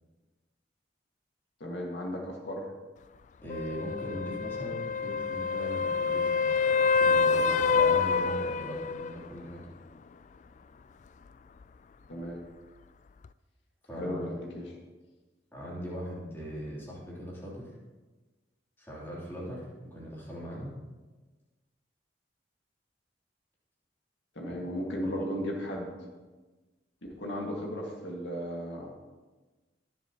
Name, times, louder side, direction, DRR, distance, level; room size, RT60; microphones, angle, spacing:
voice 1, 1.6-2.7 12.1-12.4 13.9-14.7 24.4-25.9 27.1-28.9, equal, 80° left, -1 dB, 2.0 m, -35 dB
voice 2, 3.4-9.6 13.9-14.3 15.5-17.7 18.8-20.7 24.5-24.6 25.0-25.2 26.0-26.1, equal, 15° left, -7 dB, 3.3 m, -40 dB
sound 1, 3.5-9.2 13.2-13.3, left 5 dB, 40° left, 0.3 m, -27 dB
21.0 x 7.5 x 3.0 m, 1.2 s
head